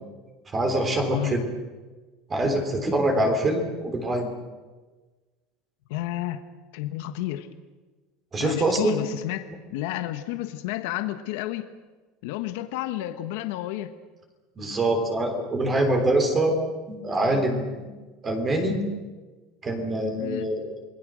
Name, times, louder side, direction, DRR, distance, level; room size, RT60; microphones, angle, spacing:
voice 1, 0.5-1.5 2.3-4.3 8.3-9.0 14.6-17.8 18.2-18.8 19.6-20.8, right 1 dB, 20° right, 5 dB, 3.6 m, -24 dB
voice 2, 1.1-1.4 5.9-6.4 6.7-7.5 8.4-11.7 12.2-13.9 20.2-20.5, left 14 dB, 75° left, 9 dB, 1.4 m, -31 dB
29.0 x 21.0 x 6.4 m, 1.3 s
cardioid pair, 155°, 0 cm